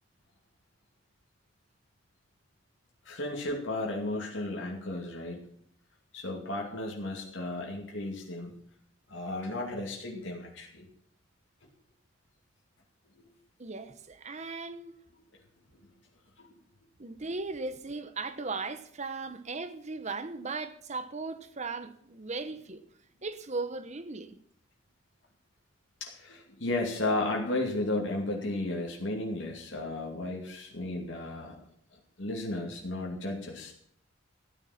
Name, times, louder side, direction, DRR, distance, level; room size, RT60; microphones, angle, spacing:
voice 1, 3.1-5.4 6.1-8.5 9.1-10.9 16.4-16.5 26.0-31.6 32.2-33.7, left 2 dB, 75° left, 2.5 m, -34 dB
voice 2, 13.6-14.9 17.0-22.8 23.2-24.4, right 3 dB, 40° right, 1.0 m, -37 dB
14.0 x 9.8 x 5.8 m
head